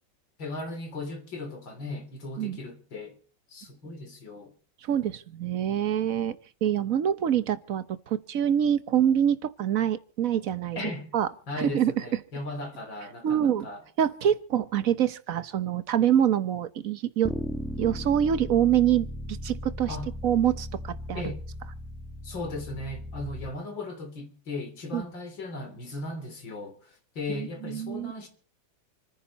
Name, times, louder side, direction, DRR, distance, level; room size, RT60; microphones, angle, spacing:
voice 1, 0.4-3.1 3.5-4.5 10.8-11.1 11.5-13.8 19.9-20.1 21.1-21.4 22.2-28.3, left 2 dB, 75° left, 4.0 m, -37 dB
voice 2, 4.9-6.4 6.6-10.8 11.1-11.3 11.6-11.9 13.2-13.7 14.0-17.3 17.8-19.1 19.4-20.0 20.2-21.3 24.9-25.0 27.3-28.1, right 9 dB, 55° right, 1.2 m, -25 dB
Bass guitar, 17.2-23.5, left 1 dB, ahead, 1.0 m, -37 dB
28.0 x 10.0 x 4.1 m
omnidirectional pair, 2.1 m